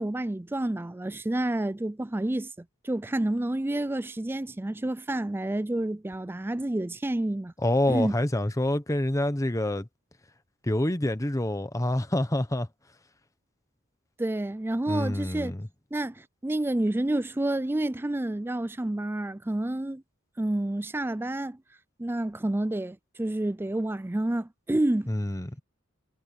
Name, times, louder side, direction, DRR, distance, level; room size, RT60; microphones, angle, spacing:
voice 1, 0.0-7.5 7.9-8.1 14.2-15.5 15.9-20.0 20.4-21.6 22.0-25.1, right 1 dB, 10° right, 0.4 m, -29 dB
voice 2, 7.6-9.9 10.7-12.7 14.9-15.7 25.1-25.5, left 1 dB, 15° left, 1.0 m, -27 dB
head